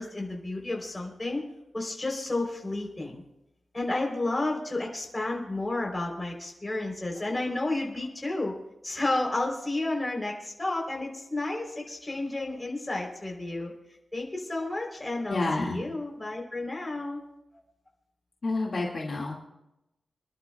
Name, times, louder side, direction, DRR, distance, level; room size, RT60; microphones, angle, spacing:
voice 1, 0.0-1.4 1.7-3.2 3.7-8.5 8.8-13.7 14.1-17.2, left 2 dB, 20° left, -1 dB, 3.6 m, -31 dB
voice 2, 15.3-15.8 18.4-19.3, left 2 dB, 45° left, -3 dB, 2.0 m, -29 dB
28.0 x 11.5 x 2.3 m, 0.90 s
wide cardioid pair, 150°, 0 cm